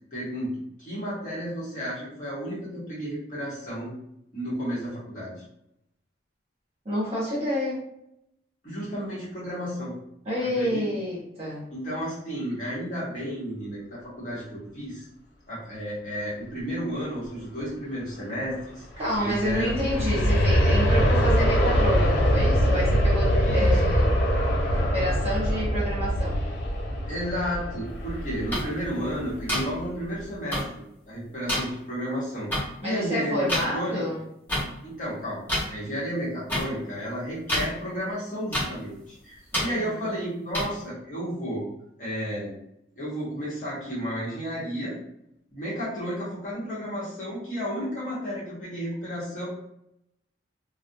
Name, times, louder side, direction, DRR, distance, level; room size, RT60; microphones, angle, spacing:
voice 1, 0.1-0.5 0.8-3.9 4.3-5.4 8.6-9.9 10.5-10.8 11.7-15.0 15.5-18.8 19.2-19.9 23.4-23.8 27.1-30.8 31.1-34.0 34.8-35.4 35.7-41.6 42.0-42.6 43.0-45.0 45.5-49.4, equal, 40° left, -8 dB, 1.0 m, -32 dB
voice 2, 6.8-7.8 10.2-11.6 19.0-24.2 24.7-26.4 32.8-34.2 39.5-40.1, left 1 dB, 30° right, -8 dB, 1.0 m, -29 dB
Aircraft, 18.9-29.8 30.2-30.3, equal, 60° left, 0.4 m, -23 dB
sound 1, 28.5-28.6 29.5-29.6 30.5-30.6 31.5-31.6 32.5-32.6 33.5-33.6 34.5-34.6 35.5-35.6 36.5-36.6 37.5-37.7 38.5-38.6 39.5-39.6 40.5-40.6, equal, 10° left, 0.7 m, -25 dB
2.4 x 2.1 x 2.6 m, 0.79 s
head